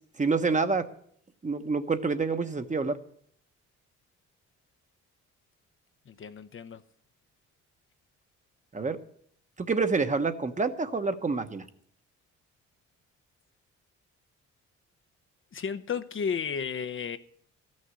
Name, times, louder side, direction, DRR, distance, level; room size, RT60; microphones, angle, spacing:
voice 1, 0.2-0.9 1.4-3.0 8.7-9.0 9.6-11.6, right 4 dB, 25° right, 1.1 m, -27 dB
voice 2, 6.1-6.8 15.5-17.2, left 6 dB, 40° left, 0.8 m, -33 dB
14.0 x 6.5 x 9.5 m
cardioid pair, 90°, 30 cm